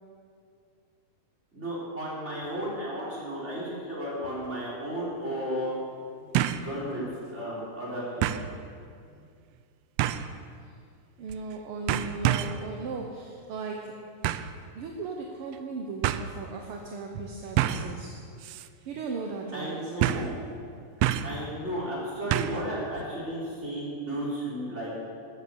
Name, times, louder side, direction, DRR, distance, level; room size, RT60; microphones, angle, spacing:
voice 1, 1.5-5.8 6.4-7.0 7.3-8.4 19.5-20.3 21.2-24.9, right 1 dB, 20° right, -7 dB, 5.3 m, -33 dB
sound 1, 4.4-4.5 6.3-6.7 7.1-7.2 8.2-8.5 10.0-10.3 11.3-11.5 11.9-12.6 14.2-14.5 15.5-15.6 16.0-16.2 17.6-17.9 18.4-18.7 18.9-19.0 20.0-20.3 21.0-21.4 22.3-22.7 23.0-23.1, right 12 dB, 85° right, 1.4 m, -27 dB
voice 2, 11.2-14.0 14.7-18.2 18.6-19.9, right 3 dB, 60° right, 1 dB, 1.7 m, -37 dB
14.0 x 13.0 x 7.1 m, 2.3 s
omnidirectional pair, 3.4 m